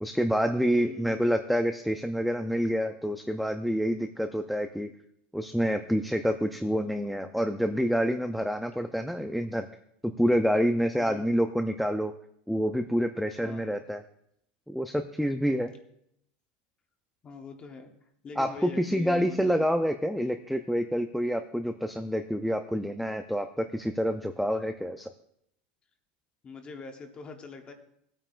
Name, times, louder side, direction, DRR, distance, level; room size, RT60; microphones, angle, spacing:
voice 1, 0.0-4.9 5.3-9.7 10.0-12.1 12.5-14.0 14.7-15.7 18.4-25.1, equal, ahead, 6 dB, 0.4 m, -27 dB
voice 2, 0.7-1.2 11.0-11.2 13.4-13.7 17.2-17.9 18.2-19.7 26.4-27.7, left 4 dB, 20° left, 5 dB, 1.0 m, -43 dB
17.5 x 8.9 x 2.4 m, 0.72 s
supercardioid pair, 155°, 5 cm